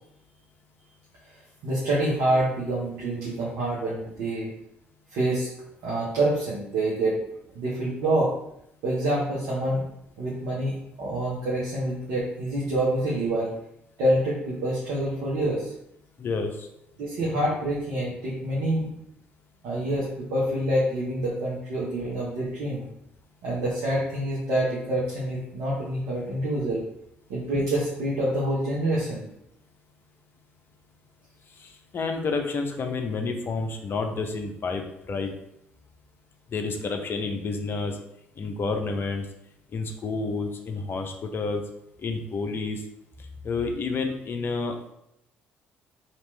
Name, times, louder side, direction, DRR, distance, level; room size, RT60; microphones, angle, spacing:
voice 1, 1.6-4.5 5.1-5.5 5.8-7.2 7.5-8.3 8.8-9.8 10.2-13.5 14.0-15.7 17.0-18.9 19.6-22.8 23.4-26.8 27.3-29.2, right 1 dB, 65° right, -7 dB, 0.9 m, -26 dB
voice 2, 16.2-16.7 31.6-35.4 36.5-38.0 38.4-39.3 39.7-41.6 42.0-42.8 43.4-44.7, left 4 dB, 40° left, 4 dB, 0.6 m, -29 dB
3.0 x 2.9 x 3.2 m, 0.79 s
hypercardioid pair, 50°, 6 cm